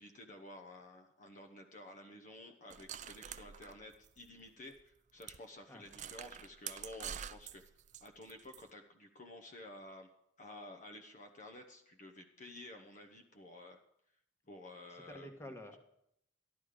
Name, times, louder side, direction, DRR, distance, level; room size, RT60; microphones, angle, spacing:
voice 1, 0.0-7.6 8.0-10.1 10.4-13.8 14.5-15.3, left 1 dB, 45° left, 4 dB, 1.0 m, -52 dB
sound 1, 2.7-4.5 4.8-4.9 5.2-5.4 5.8-8.6, right 9 dB, 40° right, 0.4 m, -47 dB
voice 2, 5.7-6.2 14.9-15.8, left 1 dB, 15° left, 5 dB, 1.4 m, -51 dB
14.0 x 11.0 x 5.1 m, 0.74 s
head